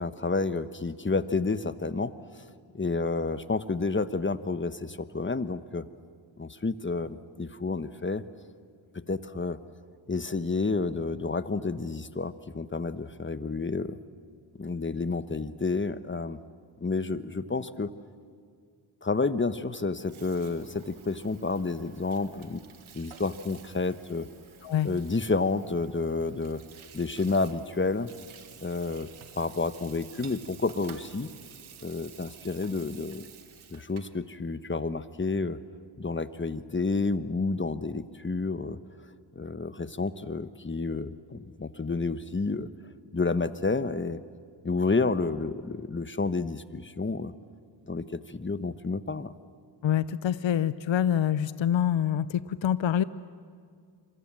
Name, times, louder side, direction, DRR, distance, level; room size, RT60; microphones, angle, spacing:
voice 1, 0.0-2.4 2.7-5.8 6.4-8.2 9.1-9.6 10.1-14.0 14.6-16.4 16.8-17.9 19.0-22.6 22.9-24.3 24.8-26.6 26.9-28.1 28.6-29.1 29.3-31.3 31.8-33.3 33.7-35.6 36.0-38.8 39.3-42.7 43.1-44.2 44.6-47.3 47.9-49.3, left 3 dB, 25° left, 13 dB, 1.2 m, -30 dB
Water tap faucet / Sink (filling or washing), 19.9-34.2, right 7 dB, 90° right, 1.7 m, -52 dB
voice 2, 49.8-53.0, left 10 dB, 70° left, 16 dB, 0.7 m, -26 dB
26.5 x 23.5 x 7.7 m, 2.1 s
cardioid pair, 55°, 47 cm